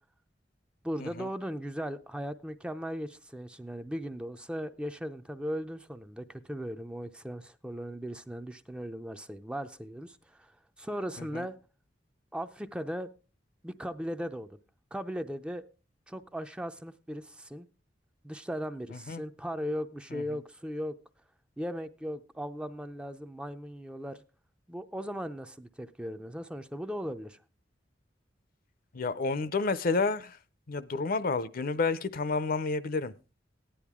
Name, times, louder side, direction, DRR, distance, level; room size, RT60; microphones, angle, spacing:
voice 1, 0.8-10.5 10.8-11.6 12.3-13.1 13.6-14.6 14.9-15.6 16.1-17.7 18.2-21.0 21.6-24.2 24.7-27.4, equal, 5° right, 0.4 m, -37 dB
voice 2, 18.9-19.2 20.1-20.4 28.9-30.4 30.7-33.1, left 4 dB, 50° left, 0.6 m, -30 dB
14.5 x 10.0 x 3.6 m
head